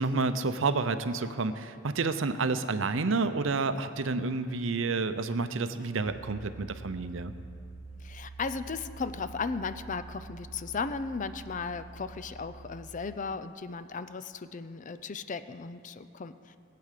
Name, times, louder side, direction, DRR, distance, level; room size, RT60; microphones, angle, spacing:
voice 1, 0.0-7.3, right 3 dB, 65° right, 11 dB, 0.7 m, -29 dB
sound 1, 6.0-13.2, right 3 dB, 50° right, 1.7 m, -47 dB
voice 2, 8.0-16.6, left 4 dB, 40° left, 12 dB, 0.5 m, -36 dB
18.0 x 8.6 x 6.7 m, 2.5 s
head